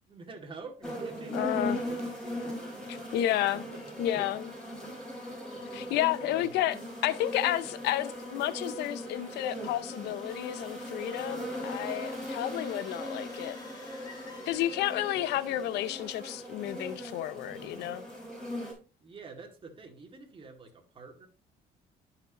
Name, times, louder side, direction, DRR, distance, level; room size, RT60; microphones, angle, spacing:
voice 1, 0.1-3.1 3.5-3.8 5.6-5.8 6.2-6.5 19.0-21.3, right 4 dB, 30° right, 2.2 m, -47 dB
sound 1, 0.8-18.7, equal, 5° left, 5.4 m, -39 dB
voice 2, 1.3-1.8 2.9-3.6 4.0-4.5 5.7-6.8 7.0-13.6 14.5-18.0, left 13 dB, 80° left, 0.7 m, -31 dB
sound 2, 9.4-15.3, left 3 dB, 25° left, 3.1 m, -53 dB
12.0 x 5.9 x 2.9 m
cardioid pair, 110°, 17 cm